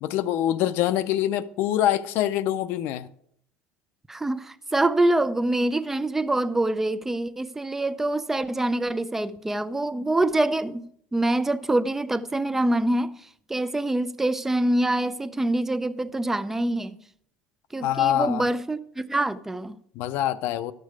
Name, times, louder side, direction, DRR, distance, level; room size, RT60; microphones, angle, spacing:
voice 1, 0.0-3.1 17.8-18.5 20.0-20.7, left 12 dB, 60° left, 0.6 m, -25 dB
voice 2, 4.1-10.8 11.1-13.1 13.5-17.0 17.7-19.8, right 1 dB, 10° right, 0.4 m, -25 dB
12.5 x 6.7 x 4.7 m
supercardioid pair, 125°, 4 cm